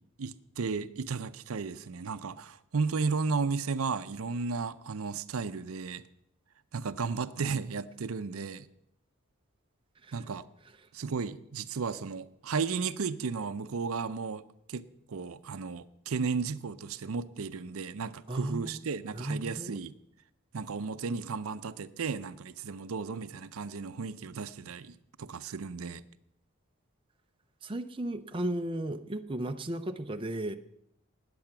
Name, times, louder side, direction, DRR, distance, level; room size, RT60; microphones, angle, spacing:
voice 1, 0.2-6.0 6.7-8.7 10.1-10.4 10.9-14.4 14.7-19.9 20.5-26.0, right 5 dB, 75° right, 14 dB, 0.6 m, -34 dB
voice 2, 18.3-18.8 19.1-19.8 27.6-30.6, right 1 dB, 25° right, 7 dB, 0.5 m, -35 dB
19.0 x 7.8 x 6.0 m, 0.78 s
head